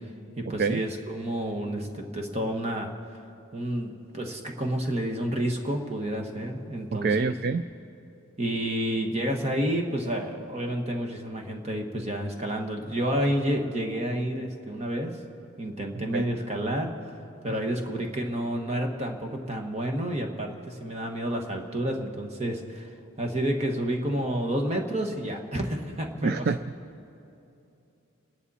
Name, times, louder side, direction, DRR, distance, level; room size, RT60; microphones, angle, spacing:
voice 1, 0.4-2.9 3.5-7.3 8.4-15.2 15.6-16.9 17.4-22.9 23.2-26.4, right 1 dB, 30° right, 3 dB, 1.4 m, -30 dB
voice 2, 6.9-7.6 16.1-16.2 17.5-17.6 26.2-26.6, right 4 dB, 45° right, 12 dB, 0.3 m, -26 dB
29.5 x 10.5 x 4.2 m, 2.8 s
head